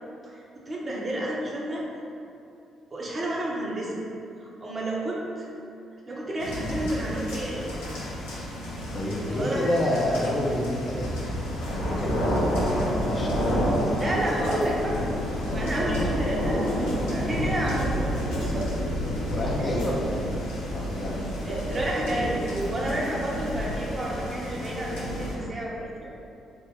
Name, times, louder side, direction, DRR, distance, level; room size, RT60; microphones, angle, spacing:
voice 1, 0.2-1.9 2.9-4.0 4.4-5.5 6.1-7.7 9.3-10.0 14.0-15.0 15.5-16.7 17.1-18.7 19.6-19.8 21.4-26.2, right 1 dB, 35° right, -4 dB, 0.8 m, -30 dB
sound 1, 6.4-25.3, equal, 80° left, 0.6 m, -29 dB
voice 2, 8.9-11.3 11.6-14.1 19.3-20.4 20.7-21.3 24.1-24.2, left 1 dB, 40° left, -3 dB, 0.6 m, -29 dB
3.5 x 2.1 x 3.7 m, 2.7 s
hypercardioid pair, 45°, 0 cm